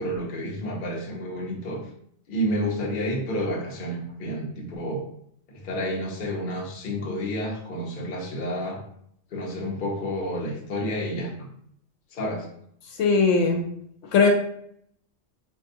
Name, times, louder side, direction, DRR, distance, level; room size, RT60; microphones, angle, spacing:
voice 1, 0.0-1.8 2.3-5.0 5.5-8.8 9.3-11.5 12.1-12.5, equal, 50° left, 0 dB, 0.8 m, -30 dB
voice 2, 13.0-13.6 14.1-14.3, left 4 dB, 80° left, 4 dB, 0.9 m, -19 dB
4.6 x 2.3 x 2.8 m, 0.69 s
omnidirectional pair, 1.3 m